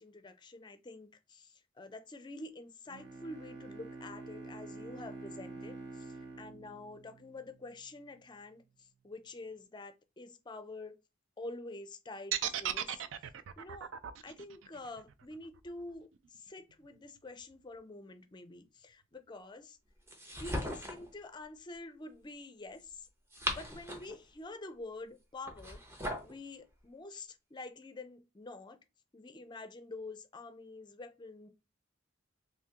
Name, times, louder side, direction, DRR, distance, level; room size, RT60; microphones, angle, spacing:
voice 1, 0.0-11.0 11.4-13.0 13.6-13.9 14.2-19.8 20.3-23.1 23.5-25.8 26.2-28.8 29.1-31.5, left 2 dB, 25° left, 0.4 m, -47 dB
Bowed string instrument, 2.9-7.8, right 3 dB, 60° right, 0.8 m, -47 dB
sound 1, 12.3-16.4, right 10 dB, 80° right, 0.4 m, -37 dB
sound 2, 20.1-21.1 23.1-24.2 25.4-26.3, equal, 15° right, 0.7 m, -38 dB
3.6 x 2.6 x 2.8 m
head